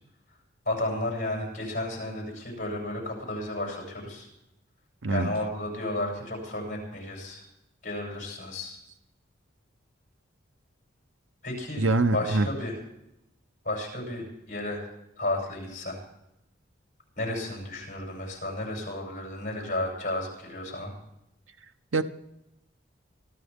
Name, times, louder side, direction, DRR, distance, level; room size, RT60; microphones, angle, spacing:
voice 1, 0.7-4.3 5.1-7.4 7.8-8.8 11.4-11.8 12.1-12.8 13.6-14.9 15.2-16.0 17.2-20.9, left 1 dB, 40° left, 7.3 m, -33 dB
voice 2, 11.8-12.5 21.9-22.0, right 2 dB, 80° right, 0.8 m, -24 dB
26.0 x 14.0 x 3.6 m
head